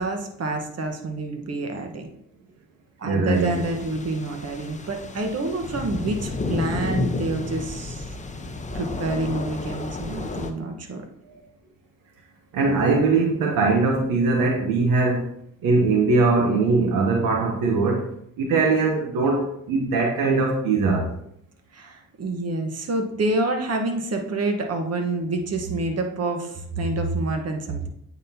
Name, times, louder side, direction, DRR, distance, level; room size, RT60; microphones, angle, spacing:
voice 1, 0.0-2.1 3.0-8.1 8.7-11.1 21.7-27.9, right 2 dB, 45° right, 4 dB, 1.3 m, -27 dB
voice 2, 3.0-3.5 11.3-11.4 12.5-15.3 15.6-18.1 18.4-21.1, right 3 dB, 75° right, 1 dB, 1.0 m, -21 dB
sound 1, 3.3-10.5, left 3 dB, 20° left, 0.8 m, -32 dB
8.8 x 4.1 x 2.8 m, 0.72 s
hypercardioid pair, 50°, 34 cm